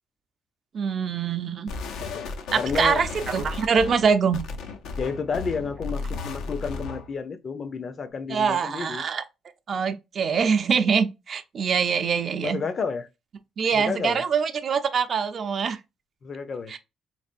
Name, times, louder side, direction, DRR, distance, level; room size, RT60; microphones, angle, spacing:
voice 1, 0.7-1.7 2.5-4.4 8.3-9.2 9.7-12.6 13.6-15.8 16.7-16.8, right 6 dB, 50° right, 0.5 m, -24 dB
sound 1, 1.7-7.1, left 4 dB, 85° left, 0.6 m, -34 dB
voice 2, 2.5-3.0 5.0-9.0 12.4-13.1 13.7-14.2 16.2-16.7, left 5 dB, 45° left, 0.6 m, -31 dB
3.5 x 3.3 x 2.5 m
cardioid pair, 100°, 0 cm